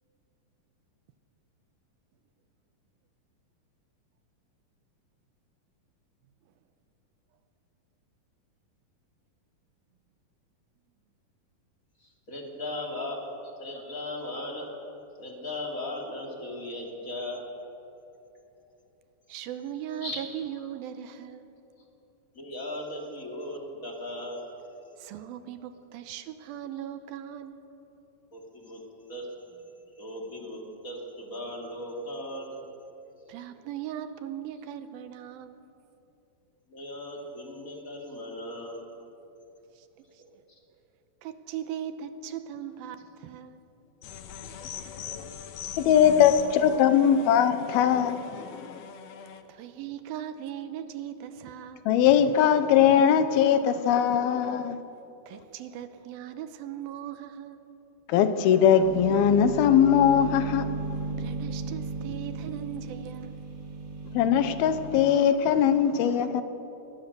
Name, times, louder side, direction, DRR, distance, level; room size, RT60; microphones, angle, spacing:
voice 1, 12.0-13.2 13.6-14.7 15.2-17.5 20.0-20.5 22.3-24.4 28.3-28.8 29.1-29.6 30.0-32.6 36.7-38.9 40.2-40.6 44.9-45.5 45.9-46.0 46.8-47.0, left 1 dB, 25° left, 0 dB, 2.8 m, -38 dB
voice 2, 19.3-21.6 25.0-27.6 33.3-35.7 39.8-39.9 40.1-40.2 41.2-43.6 49.5-51.9 55.3-57.7 61.1-63.4, right 10 dB, 80° right, 10 dB, 2.7 m, -39 dB
sound 1, 44.0-49.4, left 8 dB, 65° left, 1.9 m, -41 dB
voice 3, 45.8-48.8 51.9-54.8 58.1-60.7 64.1-66.4, left 8 dB, 85° left, 11 dB, 2.9 m, -21 dB
sound 2, 58.8-65.1, right 3 dB, 50° right, 1.0 m, -35 dB
21.5 x 20.0 x 6.8 m, 2.9 s
omnidirectional pair, 4.3 m